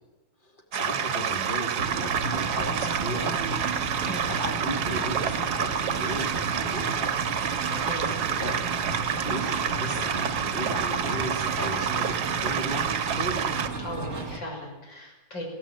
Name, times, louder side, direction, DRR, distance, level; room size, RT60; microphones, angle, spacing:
voice 1, 0.4-3.6 4.3-6.9 8.1-8.6 9.2-13.4, equal, 25° left, 2 dB, 3.4 m, -36 dB
sound 1, 0.7-13.7, right 7 dB, 65° right, 1.5 m, -28 dB
sound 2, 1.8-14.4, right 4 dB, 35° right, 2.4 m, -34 dB
voice 2, 7.7-8.1 13.8-15.4, left 1 dB, 75° left, 0 dB, 7.3 m, -38 dB
20.0 x 17.5 x 9.2 m, 1.1 s
omnidirectional pair, 2.0 m